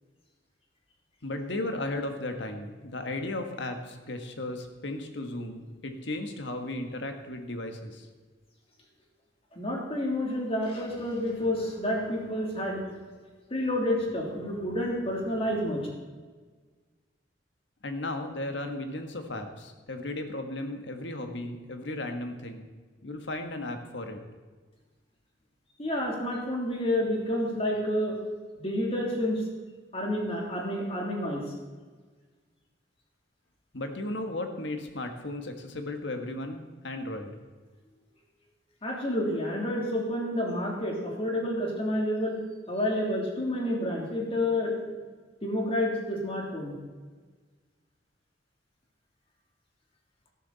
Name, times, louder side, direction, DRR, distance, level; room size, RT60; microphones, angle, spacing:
voice 1, 1.2-8.1 17.8-22.7 23.0-24.2 33.7-37.3, left 1 dB, 70° left, 5 dB, 1.7 m, -35 dB
voice 2, 9.5-12.9 13.5-15.9 25.8-28.2 28.5-29.4 29.9-31.4 38.8-42.4 42.7-45.0 45.4-46.8, left 1 dB, 30° left, -1 dB, 3.2 m, -29 dB
13.0 x 12.0 x 4.2 m, 1.4 s
head